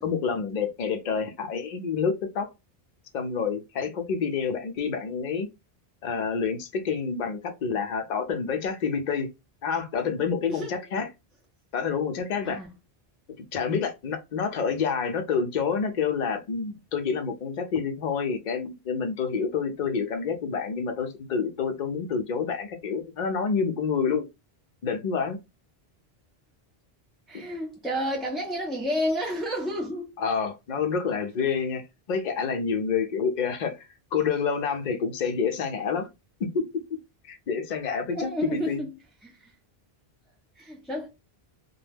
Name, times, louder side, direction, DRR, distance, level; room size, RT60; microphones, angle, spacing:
voice 1, 0.0-2.5 3.1-5.5 6.0-9.3 9.6-11.1 11.7-12.6 13.4-24.2 24.8-25.4 30.2-36.1 36.4-36.8 37.2-38.8, left 6 dB, 55° left, 0.6 m, -28 dB
voice 2, 10.5-10.8 12.4-12.7 27.3-30.1 38.1-38.9 39.2-39.5 40.6-41.1, equal, ahead, 0.3 m, -30 dB
2.2 x 2.1 x 3.3 m
omnidirectional pair, 1.0 m